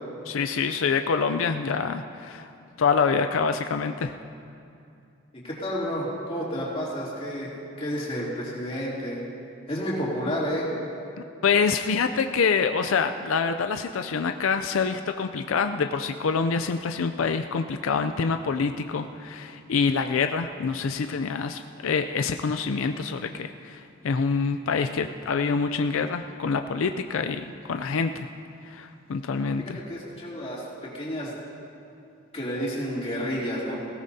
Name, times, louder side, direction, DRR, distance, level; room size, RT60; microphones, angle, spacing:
voice 1, 0.3-2.5 2.8-4.1 11.4-28.3 28.6-29.8, left 5 dB, 85° left, 8 dB, 0.4 m, -26 dB
voice 2, 5.4-7.5 7.8-9.2 9.7-10.7 29.6-31.3 32.3-33.8, equal, 30° left, -6 dB, 2.9 m, -30 dB
19.5 x 17.0 x 2.8 m, 2.6 s
head